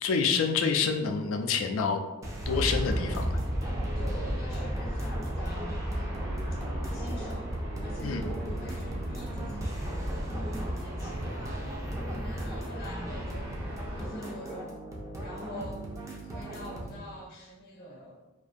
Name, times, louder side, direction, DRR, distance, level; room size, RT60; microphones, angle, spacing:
voice 1, 0.0-2.0 2.5-3.4 8.0-8.2, left 5 dB, 85° left, 5 dB, 0.3 m, -27 dB
sound 1, 2.2-17.0, right 1 dB, 15° right, 0.3 m, -39 dB
Aircraft, 2.4-14.0, equal, 55° right, 0.7 m, -34 dB
voice 2, 4.0-6.4 6.9-7.6 7.8-11.7 12.1-14.8 15.2-15.9 16.2-18.2, left 1 dB, 50° left, -3 dB, 0.6 m, -45 dB
2.4 x 2.2 x 2.5 m, 1.1 s
head